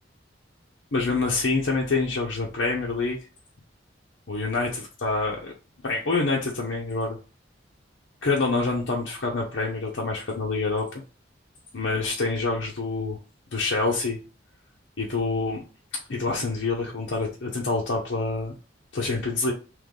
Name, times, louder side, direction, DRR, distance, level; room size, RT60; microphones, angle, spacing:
voice 1, 0.9-3.2 4.3-5.5 5.8-7.2 8.2-10.9 11.7-13.2 13.5-14.2 15.0-15.6 15.9-18.5 18.9-19.5, left 3 dB, 70° left, -3 dB, 0.8 m, -26 dB
3.4 x 3.1 x 3.7 m, 0.34 s
head